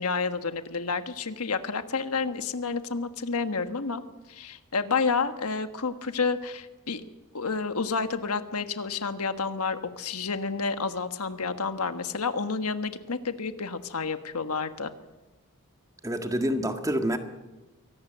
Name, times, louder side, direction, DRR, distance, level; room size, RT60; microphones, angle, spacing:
voice 1, 0.0-4.0 4.3-7.0 7.3-14.9, left 4 dB, 75° left, 9 dB, 1.4 m, -30 dB
voice 2, 16.0-17.2, equal, 15° right, 6 dB, 1.7 m, -27 dB
24.0 x 18.0 x 8.0 m, 1.1 s
head